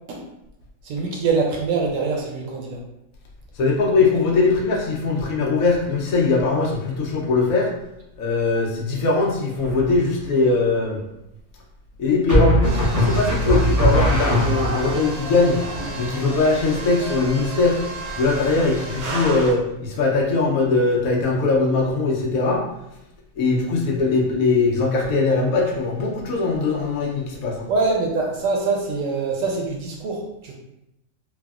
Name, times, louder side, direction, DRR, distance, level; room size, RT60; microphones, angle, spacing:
voice 1, 0.8-2.8 27.7-30.5, right 4 dB, 70° right, 0 dB, 0.9 m, -24 dB
voice 2, 3.6-7.7 8.2-11.0 12.0-15.6 16.0-17.8 18.1-22.6 23.4-27.7, left 3 dB, 75° left, -1 dB, 1.0 m, -21 dB
sound 1, 9.6-10.2 12.3-15.0, equal, 20° right, 0.5 m, -20 dB
sound 2, 12.6-19.5, right 2 dB, 90° right, 1.1 m, -32 dB
3.3 x 2.0 x 2.3 m, 0.86 s
omnidirectional pair, 1.5 m